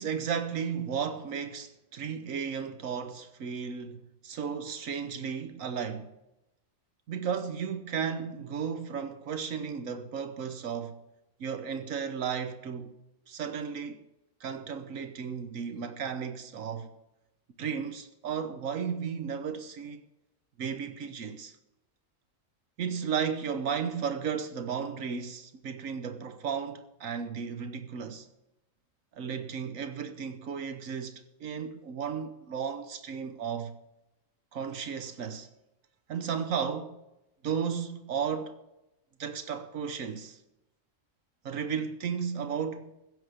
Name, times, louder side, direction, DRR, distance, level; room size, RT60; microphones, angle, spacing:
voice 1, 0.0-6.1 7.1-11.0 11.4-12.9 13.3-14.0 14.4-16.9 17.6-20.0 20.6-21.5 22.8-28.3 29.1-33.8 34.5-35.5 36.1-37.0 37.4-38.6 39.2-40.4 41.4-42.9, right 7 dB, 85° right, 1.3 m, -34 dB
16.0 x 7.1 x 6.6 m
omnidirectional pair, 1.4 m